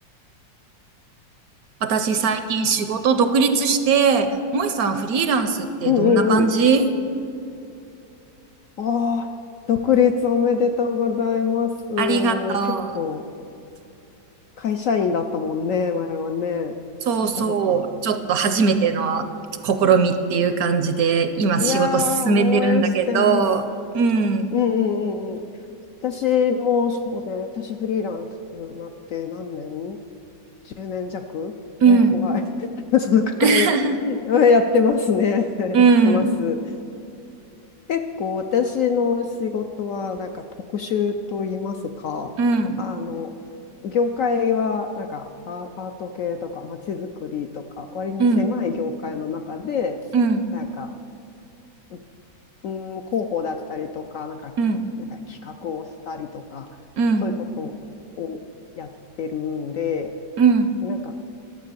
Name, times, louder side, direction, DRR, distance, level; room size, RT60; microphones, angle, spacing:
voice 1, 1.8-6.8 12.0-12.9 17.1-19.3 19.6-23.6 23.9-24.5 31.8-32.2 33.4-34.0 35.7-36.3 42.4-42.8 48.2-48.5 50.1-50.5 54.6-54.9 57.0-57.3 60.4-60.7, right 5 dB, 70° right, 9 dB, 1.0 m, -20 dB
voice 2, 5.8-6.5 8.8-9.3 9.7-13.2 14.6-16.7 17.3-17.8 21.6-23.5 24.5-25.4 26.0-30.0 30.6-31.5 31.9-33.7 34.1-36.6 37.9-40.4 40.7-42.3 42.8-43.3 43.8-50.0 50.5-50.9 51.9-52.0 52.6-54.5 55.1-56.7 57.2-57.7 58.2-58.4 58.8-58.9 59.2-60.1 60.8-61.1, left 6 dB, 70° left, 6 dB, 0.7 m, -24 dB
11.5 x 7.5 x 6.8 m, 2.8 s
omnidirectional pair, 1.9 m